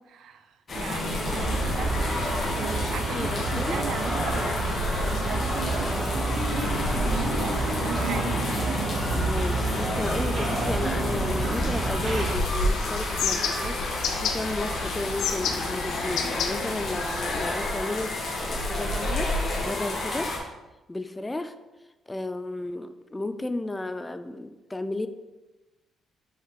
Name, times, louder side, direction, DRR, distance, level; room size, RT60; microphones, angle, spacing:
voice 1, 0.0-2.1 2.6-5.9 6.5-8.4, right 7 dB, 75° right, 9 dB, 0.5 m, -38 dB
sound 1, 0.7-20.4, left 1 dB, 45° left, 1.7 m, -30 dB
sound 2, 1.2-12.4, right 2 dB, 45° right, 1.4 m, -29 dB
voice 2, 3.1-3.8 9.1-13.8 14.2-20.3 20.9-21.5 22.1-25.1, left 2 dB, 15° left, 11 dB, 0.4 m, -33 dB
sound 3, 12.2-17.5, left 6 dB, 80° left, 0.6 m, -32 dB
5.7 x 5.5 x 3.2 m, 1.1 s
cardioid pair, 90°, 0 cm